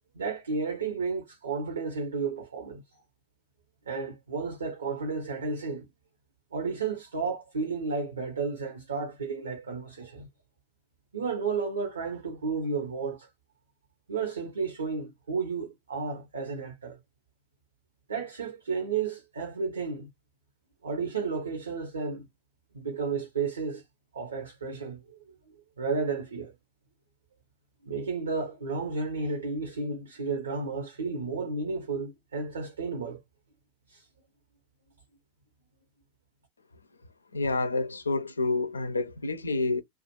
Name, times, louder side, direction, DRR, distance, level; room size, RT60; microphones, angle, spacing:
voice 1, 0.1-3.0 3.9-5.9 6.5-10.3 11.1-13.3 14.1-17.0 18.1-20.1 20.8-22.2 22.7-23.8 24.1-25.2 25.8-26.5 27.8-33.2 33.9-34.1, right 4 dB, 80° right, 0.9 m, -32 dB
voice 2, 37.3-39.8, left 3 dB, 85° left, 0.4 m, -28 dB
2.4 x 2.3 x 2.9 m
figure-of-eight pair, 90°, 0 cm